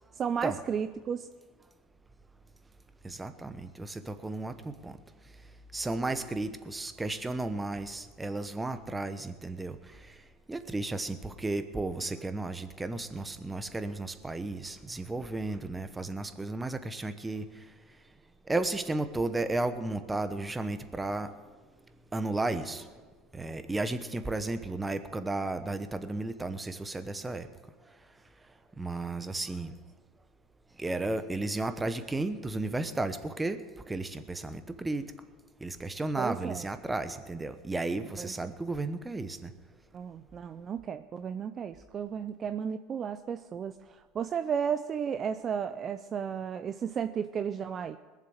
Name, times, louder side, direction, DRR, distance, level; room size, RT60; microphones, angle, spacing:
voice 1, 0.2-1.3 22.5-22.6 23.5-23.6 36.2-36.7 38.2-38.5 39.9-48.0, right 7 dB, 35° right, 11 dB, 0.5 m, -34 dB
voice 2, 3.0-5.0 5.7-10.1 10.5-17.5 18.5-21.3 22.1-22.9 23.3-27.5 28.8-29.7 30.8-35.1 35.6-39.5, right 2 dB, 15° right, 10 dB, 1.0 m, -34 dB
20.5 x 7.5 x 6.5 m, 1.4 s
supercardioid pair, 105°, 0 cm